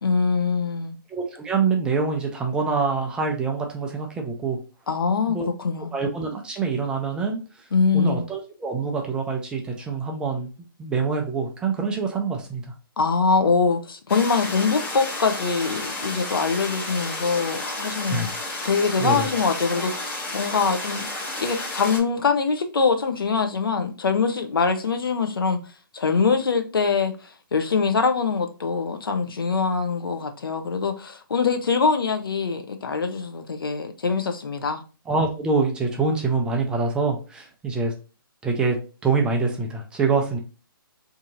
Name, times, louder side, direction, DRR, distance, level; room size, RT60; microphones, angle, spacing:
voice 1, 0.0-0.9 4.9-5.9 7.7-8.2 13.0-18.3 18.6-21.1 21.4-25.6 25.9-34.8, left 5 dB, 75° left, 0.6 m, -23 dB
voice 2, 1.1-4.6 5.3-5.5 5.9-7.4 7.9-10.5 10.8-12.6 18.1-18.3 19.0-19.3 35.1-37.9 38.4-40.4, right 4 dB, 5° right, 0.3 m, -25 dB
sound 1, 14.1-22.0, left 2 dB, 15° left, 0.7 m, -32 dB
2.7 x 2.6 x 3.8 m
figure-of-eight pair, 140°, 12 cm